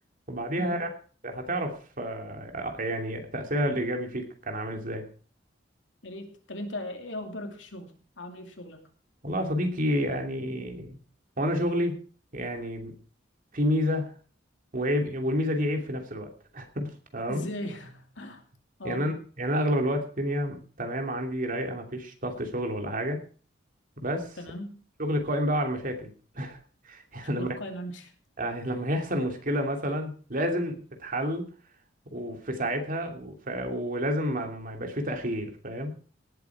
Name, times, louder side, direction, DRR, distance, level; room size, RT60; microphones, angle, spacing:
voice 1, 0.3-0.9 1.2-5.0 9.2-11.0 11.4-12.0 12.3-12.9 13.5-14.1 14.7-16.3 16.5-17.5 18.8-23.2 24.0-24.4 25.0-26.6 26.8-27.5 28.4-31.5 32.1-35.9, equal, 50° right, 4 dB, 2.9 m, -29 dB
voice 2, 6.0-7.9 8.2-8.8 17.3-18.4 18.8-19.1 24.4-24.8 27.4-28.1, left 1 dB, 80° left, 4 dB, 2.8 m, -38 dB
18.5 x 8.3 x 4.8 m, 0.40 s
head